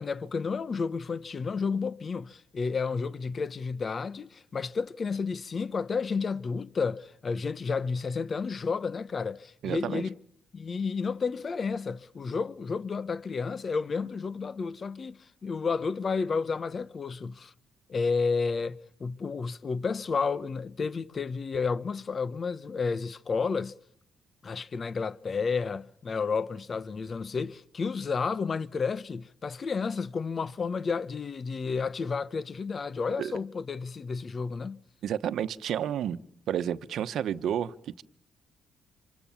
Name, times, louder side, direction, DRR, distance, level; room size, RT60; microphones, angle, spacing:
voice 1, 0.0-10.1 10.5-17.5 17.9-23.7 24.4-34.8, left 5 dB, 40° left, 1.1 m, -31 dB
voice 2, 9.6-10.0 33.2-33.3 35.0-36.2 36.5-38.0, right 9 dB, 70° right, 1.1 m, -31 dB
27.0 x 25.5 x 7.2 m
cardioid pair, 90°, 0 cm